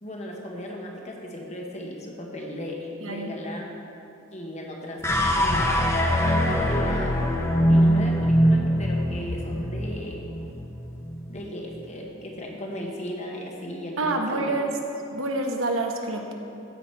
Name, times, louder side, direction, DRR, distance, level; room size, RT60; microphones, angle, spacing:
voice 1, 0.0-3.7 4.3-5.8 6.2-7.1 7.7-10.2 11.3-14.6, left 1 dB, 35° left, 0 dB, 1.3 m, -36 dB
voice 2, 3.0-3.3 14.0-14.7 15.1-16.3, right 2 dB, 75° right, 3 dB, 1.0 m, -27 dB
sound 1, 5.0-11.4, equal, 15° left, 0.7 m, -23 dB
15.0 x 6.1 x 4.6 m, 2.7 s
head